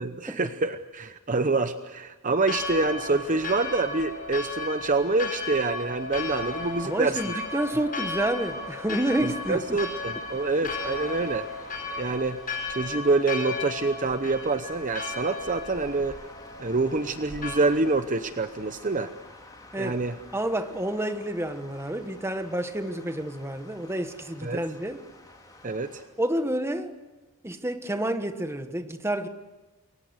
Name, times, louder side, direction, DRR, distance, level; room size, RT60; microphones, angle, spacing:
voice 1, 0.0-7.4 9.2-11.5 12.0-12.4 12.7-16.2 16.6-19.1 19.8-20.1 24.4-24.6 25.6-26.0, right 3 dB, 35° right, 0.8 m, -26 dB
Church bell, 2.4-17.6, left 3 dB, 40° left, 4.4 m, -35 dB
voice 2, 6.8-9.8 19.7-20.0 20.3-25.0 26.2-27.0 27.4-29.3, right 1 dB, 10° right, 1.4 m, -29 dB
sound 1, 8.3-26.0, left 2 dB, 15° left, 4.8 m, -50 dB
28.0 x 23.0 x 8.1 m
head